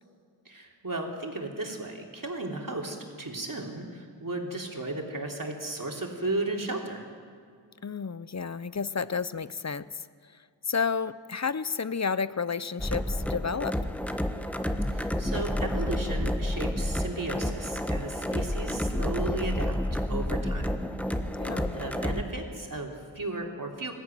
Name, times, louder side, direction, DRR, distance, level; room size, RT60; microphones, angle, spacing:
voice 1, 0.4-7.1 14.9-19.8 20.1-20.8 21.7-23.9, right 2 dB, 45° right, 1 dB, 3.3 m, -35 dB
voice 2, 7.8-10.1 10.7-13.8 21.4-21.7, left 5 dB, 40° left, 16 dB, 0.7 m, -31 dB
sound 1, 12.8-22.2, left 1 dB, 5° left, 1.3 m, -30 dB
19.5 x 14.5 x 9.2 m, 2.1 s
cardioid pair, 45°, 43 cm